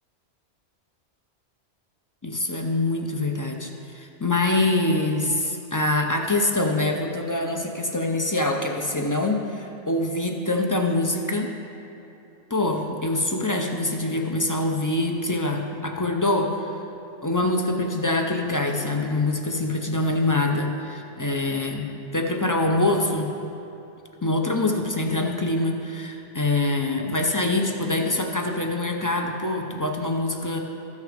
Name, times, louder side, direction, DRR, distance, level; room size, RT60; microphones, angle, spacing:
voice 1, 2.2-11.5 12.5-16.8 17.2-21.9 22.1-23.3 24.2-30.6, left 2 dB, 25° left, 2 dB, 0.5 m, -24 dB
13.5 x 6.5 x 5.0 m, 2.9 s
omnidirectional pair, 1.2 m